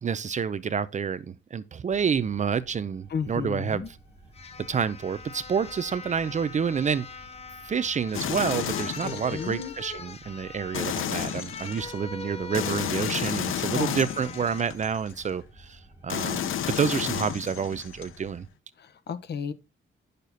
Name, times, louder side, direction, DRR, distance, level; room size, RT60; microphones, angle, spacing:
voice 1, 0.0-3.8 4.7-7.0 7.7-18.5, right 6 dB, 35° right, 0.6 m, -28 dB
sound 1, 1.9-18.5, right 1 dB, 10° right, 4.9 m, -53 dB
voice 2, 3.1-3.9 9.0-9.7 13.7-14.0 18.8-19.5, left 6 dB, 55° left, 1.1 m, -33 dB
sound 2, 3.9-4.0 4.3-14.7 15.2-15.4, left 4 dB, 30° left, 0.9 m, -42 dB
sound 3, 8.1-9.7 10.7-11.9 12.5-15.1 16.1-18.1, left 10 dB, 85° left, 0.9 m, -32 dB
10.5 x 6.7 x 4.1 m
wide cardioid pair, 165°, 20 cm